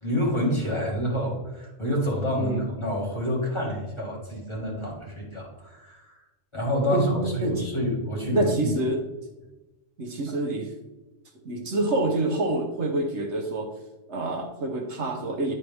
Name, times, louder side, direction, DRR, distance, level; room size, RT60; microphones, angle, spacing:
voice 1, 0.0-6.2 6.5-8.8, equal, 20° left, -3 dB, 1.9 m, -28 dB
voice 2, 6.9-7.7 8.3-9.0 10.0-10.7 11.4-13.7 14.1-15.5, right 2 dB, 60° right, 1 dB, 1.2 m, -27 dB
10.5 x 4.3 x 3.5 m, 1.1 s
omnidirectional pair, 1.4 m